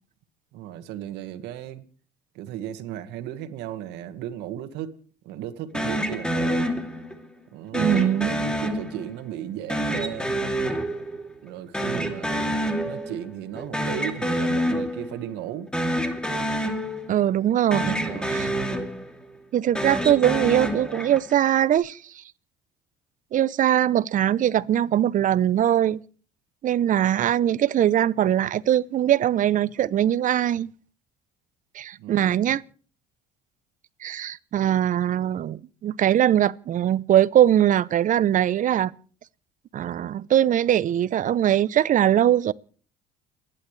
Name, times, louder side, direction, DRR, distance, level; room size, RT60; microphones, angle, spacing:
voice 1, 0.5-1.8 2.4-4.9 5.2-6.7 7.5-10.4 11.4-12.6 12.8-15.7 17.7-18.7 32.0-32.6, right 11 dB, 75° right, 1.7 m, -36 dB
sound 1, 5.7-7.3 7.7-9.3 9.7-11.5 11.7-13.3 13.5-15.3 15.7-17.5 17.7-19.3 19.7-21.4, equal, 5° left, 2.7 m, -27 dB
voice 2, 7.7-8.3 17.1-18.0 18.2-18.5 19.5-22.2 23.3-26.0 26.6-30.7 31.7-32.6 34.0-38.9 39.7-42.5, right 11 dB, 50° right, 0.7 m, -21 dB
30.0 x 11.0 x 3.3 m
supercardioid pair, 80°, 17 cm